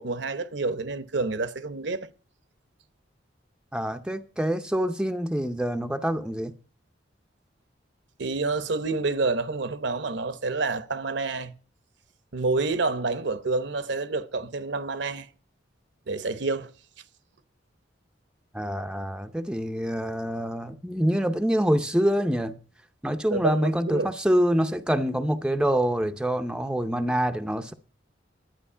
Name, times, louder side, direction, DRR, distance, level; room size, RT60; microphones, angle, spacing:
voice 1, 0.0-2.1 8.2-11.5 12.3-15.3 16.1-16.7 23.3-24.1, right 3 dB, 65° right, 0.8 m, -28 dB
voice 2, 3.7-6.5 18.5-22.6 23.0-27.7, equal, 5° right, 0.6 m, -26 dB
11.5 x 9.1 x 5.6 m
head